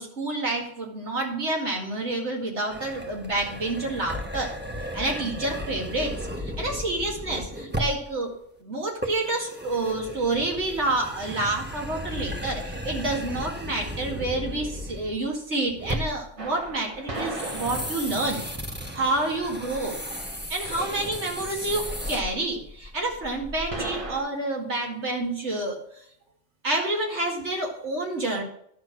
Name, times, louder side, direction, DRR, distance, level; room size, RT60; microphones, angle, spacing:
voice 1, 0.0-4.5 4.9-8.3 8.6-18.4 18.9-20.0 20.5-25.8 26.6-28.4, right 2 dB, 65° right, 0 dB, 2.6 m, -28 dB
sound 1, 2.7-8.1 9.0-15.3 15.7-16.3 17.1-22.2, equal, 10° right, 1.2 m, -35 dB
sound 2, 16.4-24.2, right 1 dB, 25° right, 1.4 m, -38 dB
11.0 x 6.5 x 6.3 m, 0.70 s
omnidirectional pair, 1.3 m